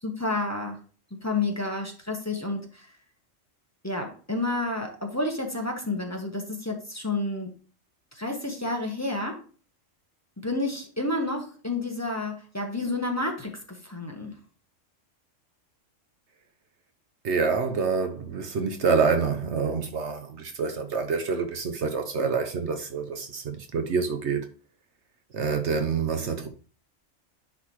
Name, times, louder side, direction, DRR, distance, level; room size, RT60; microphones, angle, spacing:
voice 1, 0.0-0.8 1.1-2.9 3.8-7.5 8.1-9.4 10.4-14.4, left 2 dB, 15° left, 1.3 m, -30 dB
voice 2, 17.2-24.5 25.3-26.5, right 5 dB, 65° right, 1.1 m, -27 dB
10.0 x 4.0 x 3.1 m
omnidirectional pair, 1.3 m